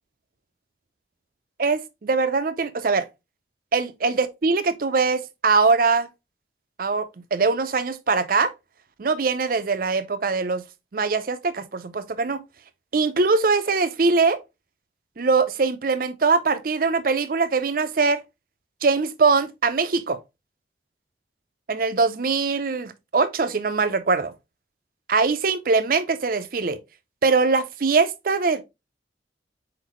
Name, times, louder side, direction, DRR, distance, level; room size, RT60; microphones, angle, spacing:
voice 1, 1.6-3.1 3.7-6.1 6.8-8.5 9.0-10.6 10.9-12.4 12.9-14.4 15.2-18.2 18.8-20.2 21.7-24.3 25.1-26.8 27.2-28.6, right 4 dB, 50° right, 0.5 m, -22 dB
4.5 x 3.9 x 3.0 m
head